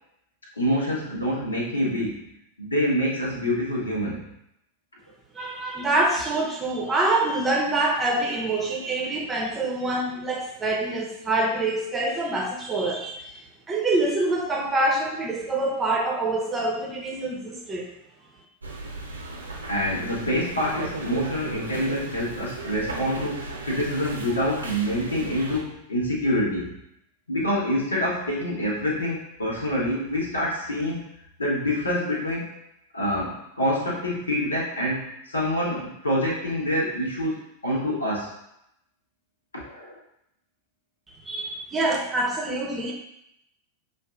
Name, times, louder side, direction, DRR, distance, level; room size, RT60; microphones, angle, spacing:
voice 1, 0.6-2.3 2.6-4.3 19.7-26.8 27.3-31.0 31.4-32.5 32.9-38.3 39.5-40.0, equal, 75° left, -4 dB, 1.1 m, -26 dB
voice 2, 5.3-13.4 13.7-17.9 41.3-42.9, right 2 dB, 15° right, 0 dB, 0.7 m, -25 dB
sound 1, 18.6-25.6, right 2 dB, 75° right, 0.7 m, -36 dB
6.3 x 2.5 x 2.4 m, 0.80 s
figure-of-eight pair, 90°, 0 cm